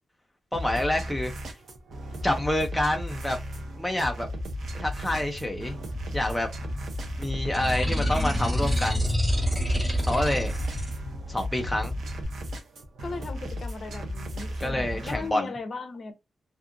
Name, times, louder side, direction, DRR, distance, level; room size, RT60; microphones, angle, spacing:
voice 1, 0.5-1.3 2.2-3.4 3.8-4.3 4.8-5.8 6.1-6.5 7.2-9.1 10.1-10.5 11.3-12.0 14.6-15.5, left 1 dB, 5° left, 0.4 m, -27 dB
sound 1, 0.5-15.3, equal, 70° right, 0.7 m, -35 dB
sound 2, 4.4-12.2, equal, 45° right, 1.0 m, -40 dB
sound 3, 7.5-10.9, equal, 10° right, 1.0 m, -26 dB
voice 2, 13.0-16.1, left 4 dB, 45° left, 0.6 m, -37 dB
2.6 x 2.4 x 2.4 m
wide cardioid pair, 170°, 0 cm